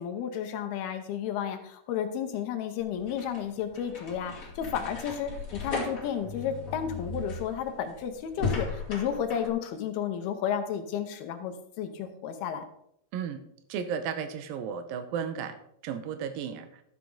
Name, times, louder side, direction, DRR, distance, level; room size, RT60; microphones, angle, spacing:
voice 1, 0.0-12.7, left 8 dB, 80° left, 7 dB, 2.7 m, -32 dB
sound 1, 2.8-9.5, left 4 dB, 30° left, 1.7 m, -37 dB
voice 2, 13.7-16.8, right 7 dB, 75° right, 9 dB, 2.4 m, -34 dB
12.0 x 7.4 x 3.8 m, 0.75 s
omnidirectional pair, 4.5 m